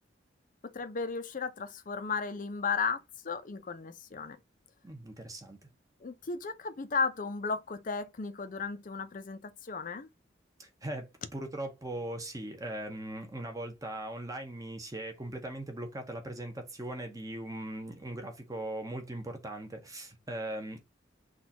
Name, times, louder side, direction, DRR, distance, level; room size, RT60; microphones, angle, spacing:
voice 1, 0.7-4.4 6.0-10.1, left 5 dB, 45° left, 0.5 m, -35 dB
voice 2, 4.8-5.7 10.6-20.8, right 1 dB, 20° right, 0.7 m, -39 dB
6.1 x 2.4 x 2.8 m
head